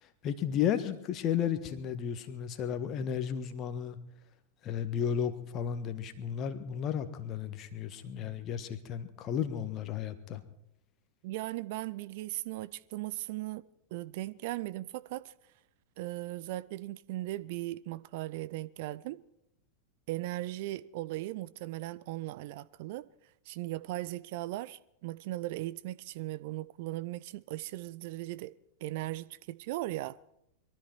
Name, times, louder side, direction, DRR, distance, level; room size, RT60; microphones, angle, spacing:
voice 1, 0.0-4.0 4.6-10.4, left 8 dB, 35° left, 1.4 m, -33 dB
voice 2, 11.2-13.6 13.9-15.3 16.0-19.2 20.1-23.1 23.5-28.5 28.8-30.2, right 17 dB, 50° right, 0.5 m, -38 dB
22.5 x 13.0 x 4.6 m
figure-of-eight pair, 90°, 0 cm